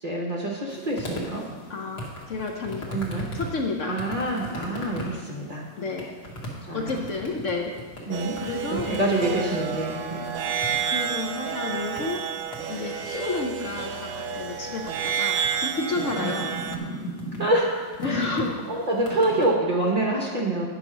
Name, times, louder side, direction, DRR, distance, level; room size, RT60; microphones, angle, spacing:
voice 1, 0.0-1.4 2.9-3.3 3.8-5.6 6.7-7.0 8.1-8.4 8.7-10.3 16.2-16.3 17.4-18.3 18.7-20.7, right 1 dB, 35° right, -2 dB, 0.6 m, -26 dB
sound 1, 0.7-19.5, right 1 dB, 55° left, 2.1 m, -39 dB
voice 2, 1.7-2.9 3.3-4.0 5.8-6.1 6.7-7.7 8.4-9.3 10.9-12.2 12.7-16.6 18.0-18.9, left 3 dB, 70° left, 2 dB, 0.7 m, -31 dB
sound 2, 8.1-16.8, right 7 dB, 85° right, 0.7 m, -30 dB
9.7 x 5.0 x 6.1 m, 1.5 s
omnidirectional pair, 2.2 m